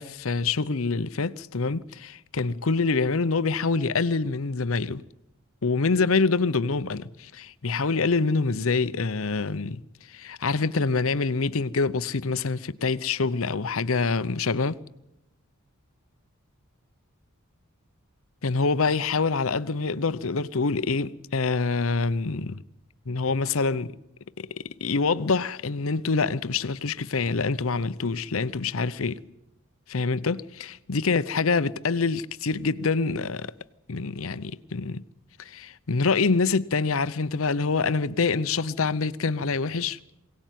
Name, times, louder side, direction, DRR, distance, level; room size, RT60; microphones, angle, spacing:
voice 1, 0.0-5.0 5.6-9.8 10.1-14.8 18.4-22.6 23.1-23.9 24.4-24.5 24.8-29.2 29.9-33.5 33.9-35.0 35.4-40.0, left 4 dB, 70° left, 0.8 m, -26 dB
22.5 x 18.0 x 9.3 m
head